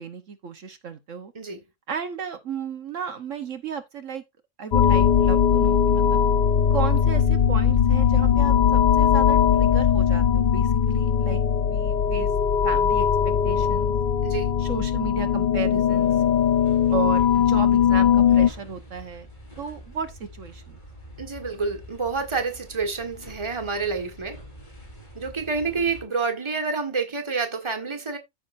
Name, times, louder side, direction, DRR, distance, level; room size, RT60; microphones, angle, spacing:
voice 1, 0.0-1.3 1.9-4.2 4.6-6.3 6.7-12.3 12.6-13.9 14.6-16.2 16.9-19.3 19.6-20.8, right 6 dB, 65° right, 1.4 m, -34 dB
sound 1, 4.7-18.5, left 8 dB, 55° left, 0.6 m, -20 dB
voice 2, 14.2-14.5 21.2-24.4 25.1-28.2, right 4 dB, 20° right, 1.6 m, -28 dB
sound 2, 15.9-26.1, left 1 dB, 35° left, 4.1 m, -45 dB
14.5 x 5.9 x 2.6 m
omnidirectional pair, 1.4 m